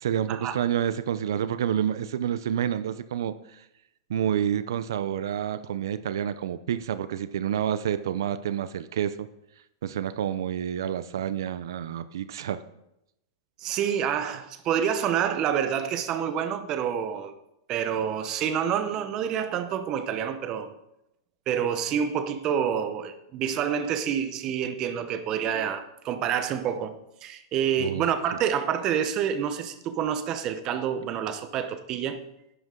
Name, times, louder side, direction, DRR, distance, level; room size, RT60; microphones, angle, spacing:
voice 1, 0.0-3.3 4.1-9.3 9.8-12.6 27.8-28.1, right 9 dB, 80° right, 14 dB, 0.6 m, -28 dB
voice 2, 13.6-17.3 17.7-20.7 21.5-32.2, right 8 dB, 25° right, 9 dB, 0.7 m, -28 dB
11.0 x 8.0 x 3.8 m, 0.84 s
supercardioid pair, 165°, 2 cm